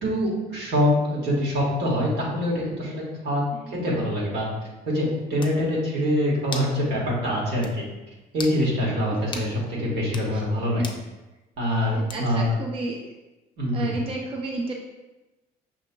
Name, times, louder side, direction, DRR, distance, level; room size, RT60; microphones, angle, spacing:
voice 1, 0.0-4.5 4.8-7.8 8.3-9.5 9.8-10.8 11.6-12.4 13.6-14.0, equal, 75° right, -4 dB, 1.5 m, -24 dB
sound 1, 5.0-5.1 5.4-5.6 6.5-6.8 7.1-7.2 7.6-7.8 8.3-8.6 9.3-9.5 10.0-10.3 10.8-11.0 12.1-12.4, left 4 dB, 30° left, 0.5 m, -36 dB
voice 2, 9.1-9.4 10.3-10.4 10.8-10.9 11.9-13.1 13.7-14.7, right 3 dB, 35° right, 0 dB, 0.5 m, -32 dB
5.8 x 2.8 x 2.2 m, 1.1 s
cardioid pair, 110°, 17 cm